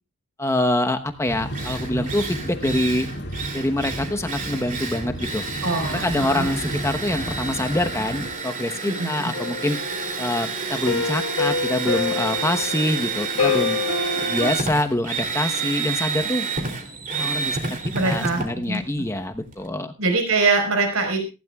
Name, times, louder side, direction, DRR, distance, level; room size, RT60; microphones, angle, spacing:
voice 1, 0.4-3.1 3.5-5.4 5.9-9.8 10.2-13.8 14.2-16.5 17.1-19.9, left 1 dB, 15° left, 6 dB, 1.0 m, -25 dB
Drill, 1.1-1.2 1.5-19.7, right 5 dB, 40° right, 2.9 m, -30 dB
sound 1, 1.3-8.3, equal, 55° left, 2.2 m, -33 dB
voice 2, 5.6-6.6 8.8-9.1 17.9-18.4 18.7-18.8 20.0-21.2, right 3 dB, 75° right, 5 dB, 4.6 m, -23 dB
sound 2, 9.3-14.5, left 5 dB, 80° left, 1.6 m, -27 dB
19.0 x 15.5 x 2.3 m, 0.30 s
head